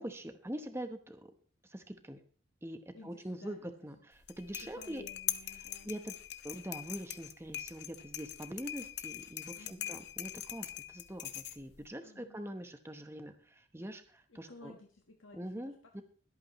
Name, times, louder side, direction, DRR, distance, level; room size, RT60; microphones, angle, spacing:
voice 1, 0.0-1.3 1.6-2.2 2.6-5.0 5.8-6.1 6.4-14.7 15.3-16.0, right 1 dB, 10° right, 7 dB, 1.0 m, -44 dB
voice 2, 2.9-3.7 4.6-5.9 9.5-10.0 12.0-12.4 14.3-15.7, left 2 dB, 75° left, 2 dB, 1.5 m, -55 dB
sound 1, 4.1-11.9, left 12 dB, 55° left, 0.8 m, -42 dB
22.5 x 8.5 x 3.1 m, 0.42 s
head